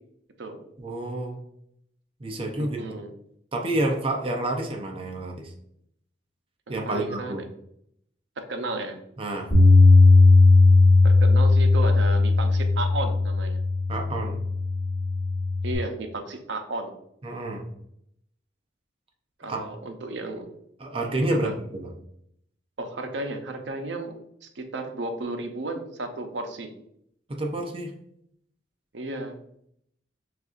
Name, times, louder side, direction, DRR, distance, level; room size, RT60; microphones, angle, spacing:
voice 1, 0.8-1.4 2.2-2.9 3.5-5.5 6.7-7.4 9.2-9.6 13.9-14.4 17.2-17.6 19.4-19.7 20.8-21.9 27.3-27.9, right 1 dB, 30° right, 2 dB, 0.5 m, -29 dB
voice 2, 2.6-3.1 6.7-7.4 8.4-9.0 11.0-13.6 15.6-16.9 19.4-20.5 21.3-21.6 22.8-24.1 24.4-26.7 28.9-29.3, right 2 dB, 70° right, 5 dB, 0.6 m, -33 dB
Bass guitar, 9.5-15.8, left 3 dB, 10° left, 1.4 m, -17 dB
6.4 x 2.5 x 2.4 m, 0.72 s
head